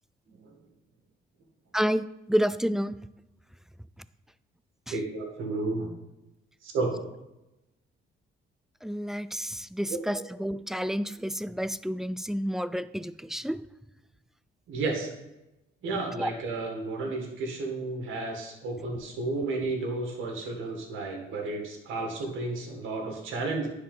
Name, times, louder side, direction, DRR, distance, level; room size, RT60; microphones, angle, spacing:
voice 1, 1.7-3.0 4.9-5.0 8.8-13.6 16.2-16.3, equal, ahead, 15 dB, 0.3 m, -30 dB
voice 2, 4.9-5.9 6.6-7.0 9.9-10.2 14.7-15.1 15.8-23.7, right 3 dB, 85° right, 1 dB, 2.1 m, -32 dB
10.0 x 4.3 x 5.6 m, 0.97 s
cardioid pair, 90°, 20 cm